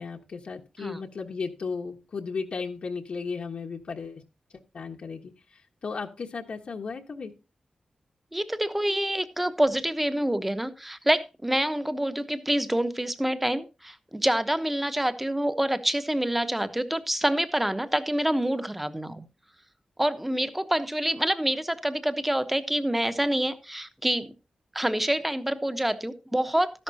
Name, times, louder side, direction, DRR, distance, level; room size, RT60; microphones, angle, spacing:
voice 1, 0.0-4.2 4.7-7.3, left 5 dB, 60° left, 2 dB, 1.3 m, -35 dB
voice 2, 8.3-19.2 20.0-24.3 24.7-26.8, right 1 dB, 5° right, 11 dB, 1.0 m, -27 dB
13.5 x 11.0 x 2.8 m, 0.30 s
wide cardioid pair, 170°, 2 cm